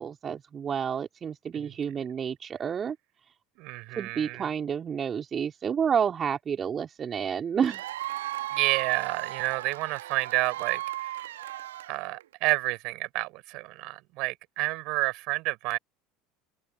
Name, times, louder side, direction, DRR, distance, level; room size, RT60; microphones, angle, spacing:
voice 1, 0.0-3.0 4.0-7.8, right 7 dB, 35° right, 3.1 m, -30 dB
voice 2, 3.6-4.5 8.5-11.3 11.9-15.8, right 23 dB, 60° right, 4.8 m, -30 dB
Cheering / Applause / Crowd, 7.6-12.3, right 14 dB, 75° right, 1.7 m, -36 dB
hypercardioid pair, 70°, 0 cm